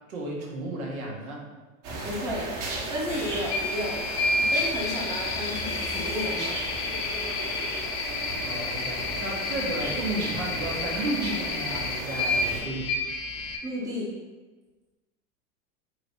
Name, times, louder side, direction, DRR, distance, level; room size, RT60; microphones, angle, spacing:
voice 1, 0.1-1.4 8.4-12.9, right 2 dB, 90° right, -2 dB, 1.0 m, -33 dB
sound 1, 1.8-12.6, right 2 dB, 50° right, 1.0 m, -36 dB
voice 2, 2.0-2.5 2.9-4.0 4.3-6.6 13.6-14.1, equal, 10° right, -5 dB, 0.6 m, -32 dB
sound 2, 3.1-13.6, left 3 dB, 35° left, 0.4 m, -30 dB
2.8 x 2.7 x 3.3 m, 1.2 s
hypercardioid pair, 120°, 42 cm